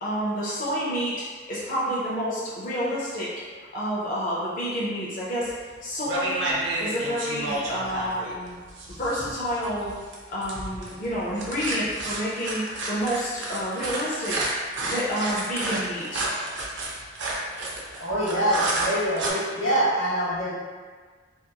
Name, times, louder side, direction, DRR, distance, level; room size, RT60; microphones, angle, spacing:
voice 1, 0.0-3.3 3.7-5.5 5.8-6.5 6.8-8.6 9.0-9.9 10.3-12.6 12.9-14.5 14.8-16.2, equal, 40° left, -8 dB, 0.5 m, -29 dB
sound 1, 5.5-5.8 6.1-19.3, right 2 dB, 65° right, 0.5 m, -31 dB
voice 2, 18.0-20.5, right 1 dB, 90° left, -8 dB, 1.0 m, -25 dB
2.7 x 2.5 x 2.2 m, 1.5 s
head